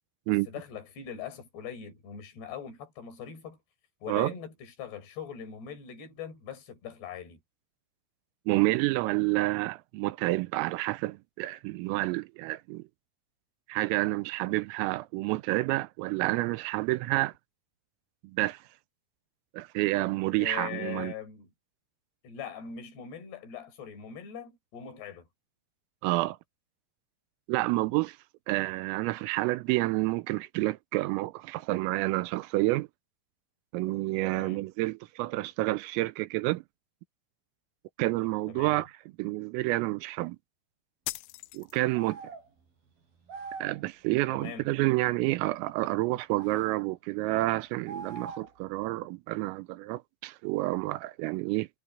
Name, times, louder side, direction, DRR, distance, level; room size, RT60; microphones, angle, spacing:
voice 1, 0.3-3.6 4.0-7.4 20.4-21.5 22.2-25.2 34.3-34.6 38.5-38.8 44.3-44.7, left 8 dB, 55° left, 6.5 m, -41 dB
voice 2, 8.5-12.8 13.7-17.3 18.2-18.6 19.5-21.1 26.0-26.4 27.5-28.2 28.5-32.9 33.7-36.6 38.0-38.9 39.2-40.4 41.5-42.2 43.6-51.7, right 20 dB, 90° right, 3.4 m, -29 dB
sound 1, 41.1-42.1, left 20 dB, 85° left, 3.0 m, -39 dB
sound 2, 41.9-42.5 43.3-43.8 46.4-46.8 47.8-48.6, right 5 dB, 45° right, 6.3 m, -42 dB
omnidirectional pair, 6.0 m